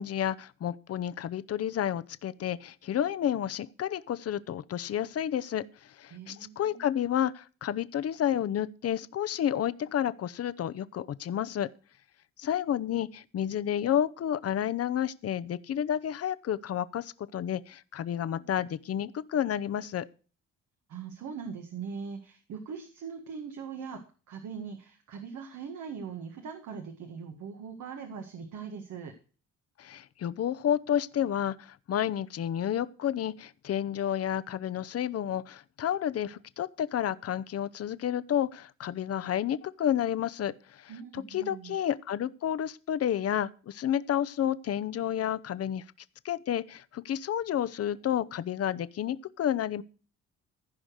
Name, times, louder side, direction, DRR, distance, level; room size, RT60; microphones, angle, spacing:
voice 1, 0.0-11.7 12.4-20.1 29.8-45.8 46.2-49.8, left 10 dB, 55° left, 0.8 m, -30 dB
voice 2, 6.1-7.0 20.9-24.0 24.3-29.1 40.9-41.8, right 6 dB, 75° right, 1.7 m, -41 dB
15.0 x 5.1 x 6.3 m
cardioid pair, 90°, 30 cm